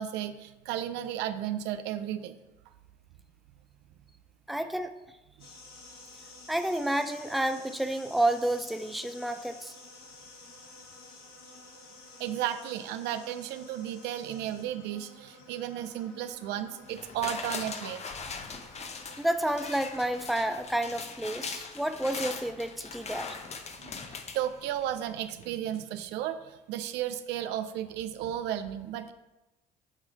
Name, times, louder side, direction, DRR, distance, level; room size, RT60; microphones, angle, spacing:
voice 1, 0.0-2.4 12.2-18.1 23.7-29.1, right 11 dB, 80° right, 10 dB, 0.5 m, -34 dB
voice 2, 4.5-4.9 6.5-9.7 19.2-23.4, right 1 dB, ahead, 9 dB, 0.6 m, -30 dB
sound 1, 5.4-20.5, left 2 dB, 55° left, 2.0 m, -52 dB
sound 2, 16.9-25.0 25.4-25.5, left 4 dB, 40° left, 0.9 m, -40 dB
8.8 x 3.2 x 4.9 m, 1.1 s
supercardioid pair, 70°, 18 cm